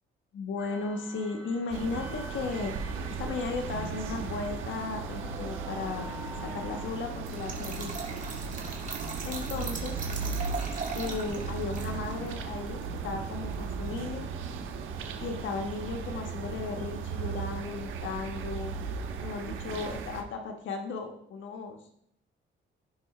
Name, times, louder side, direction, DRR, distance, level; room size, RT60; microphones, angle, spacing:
voice 1, 0.3-2.7 3.2-6.1 6.4-7.9 9.2-10.0 10.9-14.3 15.2-18.7 19.2-21.7, left 4 dB, 75° left, 4 dB, 1.3 m, -35 dB
sound 1, 0.6-6.9, right 1 dB, 15° right, 3.6 m, -47 dB
sound 2, 1.7-20.2, right 5 dB, 85° right, 1.1 m, -36 dB
Trickle dribble / Fill (with liquid), 7.2-14.0, right 4 dB, 40° right, 2.4 m, -40 dB
15.5 x 5.8 x 3.3 m, 0.72 s
cardioid pair, 90°, 20 cm